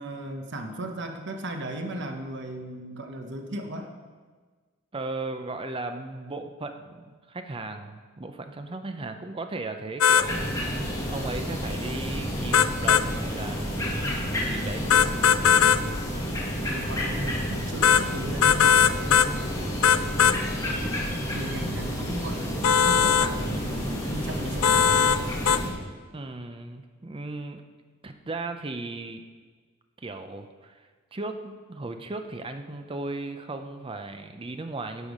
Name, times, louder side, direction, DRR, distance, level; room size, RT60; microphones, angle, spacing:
voice 1, 0.0-3.9 11.1-11.3 16.5-18.9 21.3-25.1, right 1 dB, 55° right, 4 dB, 1.0 m, -36 dB
voice 2, 4.9-14.0 14.3-15.0 15.4-15.7 19.6-20.2 26.1-27.6 28.0-29.2 30.0-35.1, right 2 dB, 25° right, 7 dB, 0.5 m, -37 dB
sound 1, 10.0-10.3 12.5-13.1 14.9-15.8 17.8-18.0 18.4-19.3 19.8-20.4 22.6-23.3 24.6-25.2 25.5-25.6, left 8 dB, 75° left, 0.4 m, -19 dB
sound 2, 10.2-25.7, equal, 15° left, 1.8 m, -30 dB
11.5 x 6.8 x 5.3 m, 1.4 s
head